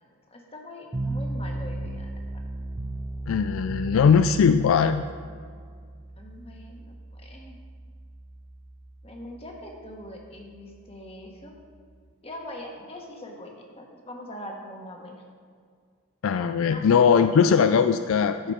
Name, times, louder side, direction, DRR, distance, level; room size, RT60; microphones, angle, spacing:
voice 1, 0.0-2.1 6.2-7.6 9.0-11.5 12.2-15.2 16.6-16.9, left 1 dB, 25° left, 1 dB, 1.4 m, -42 dB
sound 1, 0.9-12.1, right 2 dB, 20° right, 0.5 m, -37 dB
voice 2, 3.3-5.0 16.2-18.5, left 6 dB, 70° left, 10 dB, 0.3 m, -20 dB
13.0 x 5.0 x 5.6 m, 2.1 s
head